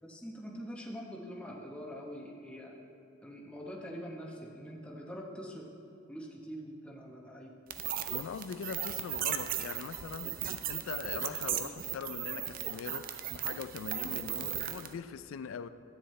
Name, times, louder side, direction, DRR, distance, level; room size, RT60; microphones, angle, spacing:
voice 1, 0.0-2.8 3.2-5.7 6.1-7.5, equal, 5° left, 0.9 m, -44 dB
sound 1, 7.7-14.9, right 10 dB, 40° right, 0.4 m, -36 dB
voice 2, 8.1-15.7, left 6 dB, 75° left, 0.3 m, -42 dB
13.0 x 9.2 x 3.2 m
head